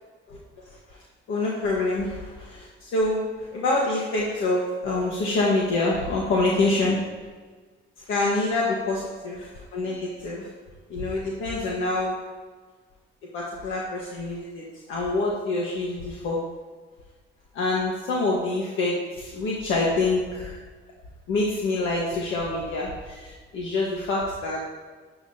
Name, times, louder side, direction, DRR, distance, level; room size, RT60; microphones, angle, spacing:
voice 1, 0.3-1.0 1.3-7.0 8.0-10.5 10.9-12.2 13.3-16.4 17.5-20.6 21.3-24.6, left 2 dB, 80° left, -3 dB, 1.5 m, -26 dB
10.0 x 9.5 x 2.8 m, 1.4 s
cardioid pair, 90°, 20 cm